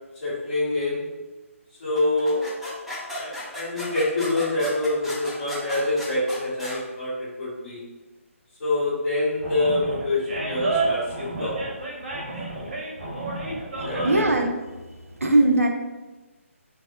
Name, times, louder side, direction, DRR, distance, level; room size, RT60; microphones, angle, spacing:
voice 1, 0.2-1.1 1.8-2.5 3.1-7.8 8.6-11.6 12.5-12.8 13.8-14.2, left 2 dB, 35° left, -9 dB, 1.4 m, -26 dB
sound 1, 1.9-6.8, left 1 dB, ahead, 0.3 m, -35 dB
Animal, 9.4-14.4, right 3 dB, 45° right, 0.7 m, -30 dB
voice 2, 14.0-14.5 15.2-15.7, right 2 dB, 80° right, 3 dB, 0.5 m, -19 dB
3.3 x 2.3 x 2.6 m, 1.2 s
figure-of-eight pair, 140°, 8 cm